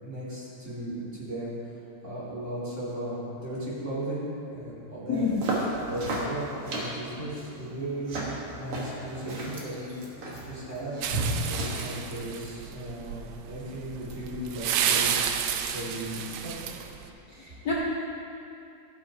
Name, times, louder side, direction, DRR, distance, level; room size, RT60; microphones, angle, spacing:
voice 1, 0.0-1.6 2.0-5.2 5.9-8.2 8.5-9.9 10.5-10.9 11.4-15.1 15.5-16.7, right 1 dB, 25° right, -9 dB, 3.1 m, -36 dB
voice 2, 5.1-5.4 17.3-17.7, left 5 dB, 75° left, -5 dB, 1.0 m, -28 dB
sound 1, 5.1-12.1, right 1 dB, 55° right, 2.2 m, -34 dB
sound 2, 11.0-17.1, right 8 dB, 75° right, 1.8 m, -31 dB
14.5 x 7.4 x 4.7 m, 2.7 s
omnidirectional pair, 3.4 m